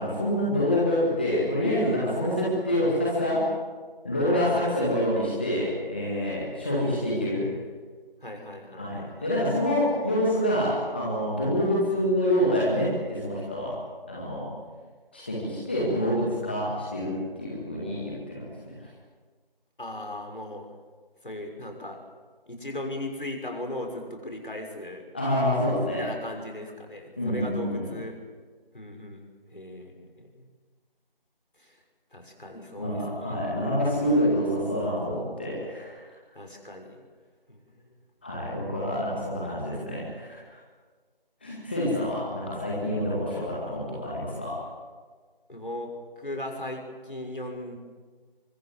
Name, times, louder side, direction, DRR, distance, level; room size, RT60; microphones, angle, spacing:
voice 1, 0.0-3.5 4.0-7.5 8.7-13.8 14.1-14.5 15.1-18.9 25.1-26.0 27.2-27.9 32.8-36.0 38.2-40.4 41.4-44.6, equal, 10° left, -6 dB, 2.1 m, -27 dB
voice 2, 4.3-4.9 8.2-9.3 19.8-20.7 21.2-22.0 22.5-25.1 26.0-28.2 28.7-29.2 29.5-30.5 31.6-31.8 32.1-33.3 36.3-37.0 37.5-37.9 45.5-45.9 46.2-47.8, left 1 dB, 60° left, 3 dB, 6.2 m, -38 dB
24.5 x 23.5 x 7.9 m, 1.5 s
figure-of-eight pair, 170°, 29 cm